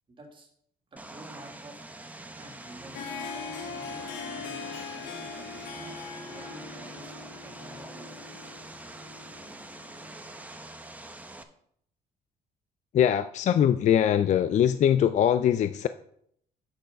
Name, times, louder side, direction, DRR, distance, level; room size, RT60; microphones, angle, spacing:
voice 1, 0.1-0.5 0.9-1.8 2.4-7.2 7.4-8.2, right 2 dB, 30° right, 2.3 m, -49 dB
Vehicle, 1.0-11.4, right 2 dB, 10° right, 0.8 m, -44 dB
Harp, 2.6-10.4, left 6 dB, 90° left, 1.1 m, -41 dB
voice 2, 12.9-15.9, left 9 dB, 45° left, 0.4 m, -22 dB
7.9 x 6.5 x 5.1 m
cardioid pair, 110°, 17 cm